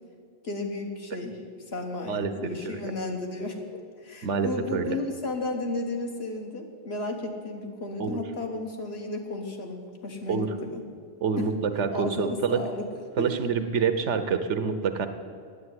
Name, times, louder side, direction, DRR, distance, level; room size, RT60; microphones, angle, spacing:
voice 1, 0.4-1.4 1.7-10.8 11.4-11.5 11.9-12.9 13.2-13.3, left 2 dB, 60° left, 2 dB, 1.6 m, -33 dB
voice 2, 4.2-5.0 8.0-8.2 10.3-10.5 11.2-12.6 13.2-15.1, right 6 dB, 85° right, 9 dB, 1.2 m, -26 dB
9.4 x 8.2 x 9.6 m, 2.1 s
omnidirectional pair, 1.2 m